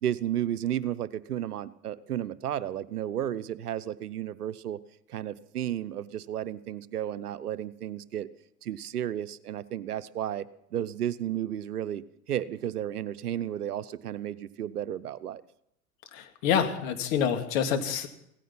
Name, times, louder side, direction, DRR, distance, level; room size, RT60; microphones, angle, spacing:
voice 1, 0.0-4.8 5.1-8.3 8.6-10.5 10.7-15.4, right 11 dB, 85° right, 15 dB, 0.8 m, -33 dB
voice 2, 16.1-18.1, left 8 dB, 60° left, 6 dB, 2.5 m, -27 dB
17.0 x 14.5 x 5.8 m, 0.76 s
hypercardioid pair, 85°, 45 cm